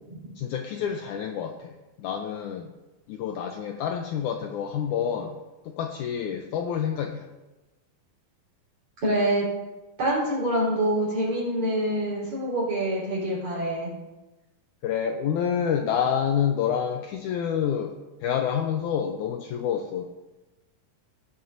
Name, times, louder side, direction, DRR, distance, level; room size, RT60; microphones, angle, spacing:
voice 1, 0.4-1.7 2.0-2.7 3.1-5.4 5.7-7.2 14.8-17.9 18.2-20.1, left 8 dB, 85° left, 5 dB, 1.7 m, -28 dB
voice 2, 9.0-9.5 10.0-13.9, right 1 dB, 50° right, -6 dB, 5.1 m, -26 dB
18.0 x 8.1 x 2.6 m, 1.1 s
omnidirectional pair, 4.2 m